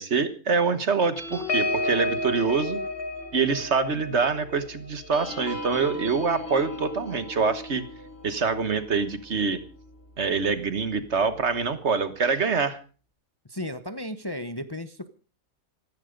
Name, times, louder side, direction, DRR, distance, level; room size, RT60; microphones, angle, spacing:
voice 1, 0.0-2.8 3.3-7.8 8.2-9.6 10.2-12.8, right 5 dB, 55° right, 12 dB, 1.5 m, -25 dB
sound 1, 1.2-10.1 10.5-10.7 11.0-11.3, left 2 dB, 45° left, 2.3 m, -34 dB
voice 2, 5.7-6.0 13.5-15.1, left 1 dB, 20° left, 10 dB, 0.9 m, -35 dB
16.0 x 14.5 x 5.2 m, 0.40 s
omnidirectional pair, 1.4 m